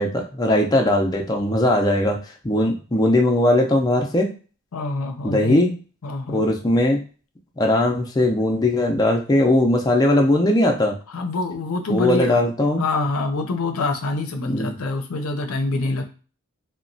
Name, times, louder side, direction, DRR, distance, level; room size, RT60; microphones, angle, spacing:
voice 1, 0.0-2.2 2.4-4.3 5.2-5.7 6.3-7.0 7.6-10.9 11.9-12.8 14.5-14.7, left 1 dB, 20° left, 0 dB, 0.4 m, -19 dB
voice 2, 4.7-5.7 6.0-6.5 11.1-12.4 12.8-16.0, left 2 dB, 80° left, 5 dB, 0.5 m, -26 dB
2.9 x 2.1 x 2.6 m, 0.36 s
head